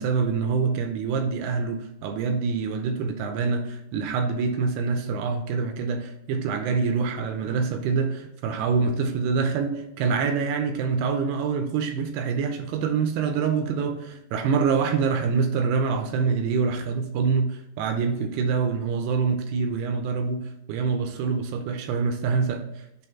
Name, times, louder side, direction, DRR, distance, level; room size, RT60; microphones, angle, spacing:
voice 1, 0.0-22.6, right 5 dB, 80° right, 2.5 m, -25 dB
7.6 x 3.5 x 4.4 m
omnidirectional pair, 5.1 m